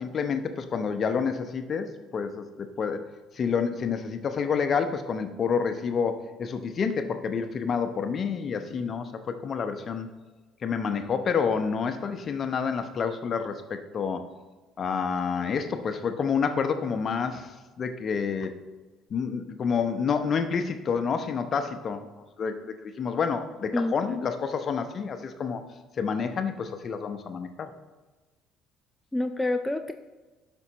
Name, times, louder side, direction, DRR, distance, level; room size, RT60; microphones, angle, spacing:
voice 1, 0.0-3.0 3.3-9.1 9.4-10.1 10.6-14.2 14.8-18.6 19.1-22.1 22.4-22.5 22.8-25.6 26.0-27.7, left 6 dB, 45° left, 8 dB, 0.8 m, -28 dB
voice 2, 23.7-24.2 29.1-29.9, left 2 dB, 10° left, 7 dB, 0.4 m, -28 dB
12.0 x 5.3 x 3.0 m, 1.2 s
hypercardioid pair, 60°, 0 cm